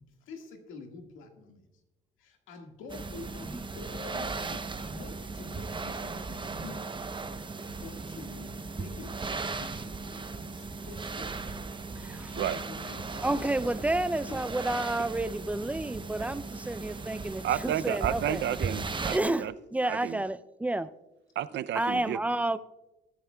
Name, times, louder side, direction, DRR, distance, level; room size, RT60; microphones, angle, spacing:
voice 1, 0.2-1.6 2.2-6.9 7.8-11.7 12.1-14.4, left 4 dB, 90° left, 1.8 m, -47 dB
sound 1, 2.9-19.2, right 4 dB, 25° right, 0.8 m, -37 dB
voice 2, 12.0-12.4 13.2-18.4 19.0-20.9 21.7-22.6, right 2 dB, 5° right, 0.4 m, -30 dB
voice 3, 17.4-19.5 19.9-20.2 21.4-22.2, right 11 dB, 65° right, 0.5 m, -31 dB
19.5 x 9.5 x 2.3 m
cardioid pair, 90°, 20 cm